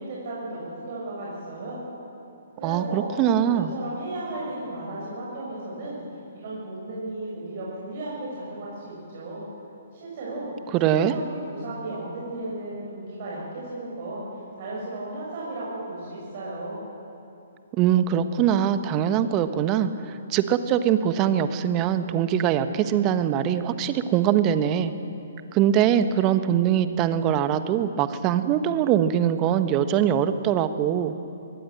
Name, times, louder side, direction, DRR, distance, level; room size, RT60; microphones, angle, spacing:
voice 1, 0.0-1.8 2.6-3.1 3.4-6.0 6.3-9.5 9.9-10.5 11.1-14.3 14.6-16.8, right 2 dB, 45° right, -6 dB, 6.7 m, -35 dB
voice 2, 2.6-3.7 10.7-11.1 17.8-19.9 20.3-24.9 25.5-31.1, right 9 dB, 30° right, 11 dB, 1.2 m, -22 dB
23.5 x 19.5 x 7.9 m, 2.8 s
figure-of-eight pair, 125°, 0 cm